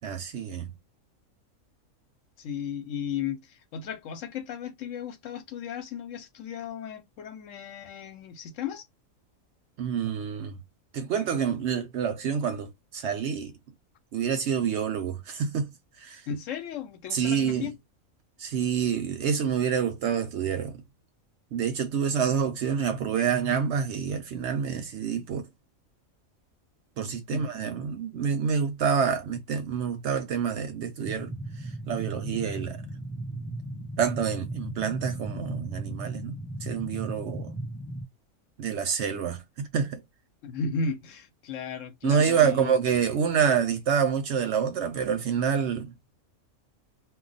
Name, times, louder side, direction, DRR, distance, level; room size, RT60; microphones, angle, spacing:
voice 1, 0.0-0.7 9.8-10.6 10.9-13.5 14.1-15.7 16.0-16.2 17.1-17.7 18.4-20.7 21.5-25.5 27.0-31.3 31.6-32.8 34.0-37.5 38.6-40.0 42.0-45.9, right 7 dB, 65° right, 0.7 m, -27 dB
voice 2, 2.4-8.8 16.3-17.7 27.3-27.5 40.4-42.7, left 6 dB, 70° left, 1.0 m, -35 dB
sound 1, 31.0-38.0, right 1 dB, 5° left, 0.9 m, -36 dB
2.3 x 2.2 x 3.8 m
omnidirectional pair, 1.4 m